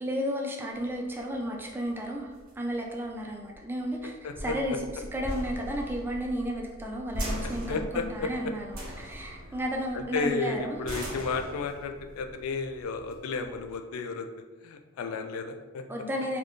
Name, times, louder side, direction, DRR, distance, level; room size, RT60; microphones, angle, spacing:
voice 1, 0.0-2.3 2.6-4.8 5.1-10.8 15.9-16.4, equal, 10° right, -1 dB, 0.4 m, -33 dB
sound 1, 0.8-13.8, equal, 40° right, 0.8 m, -40 dB
voice 2, 4.2-4.5 7.7-8.3 9.9-14.3 14.6-15.8, left 4 dB, 85° left, 7 dB, 0.3 m, -32 dB
2.5 x 2.4 x 3.5 m, 1.2 s
head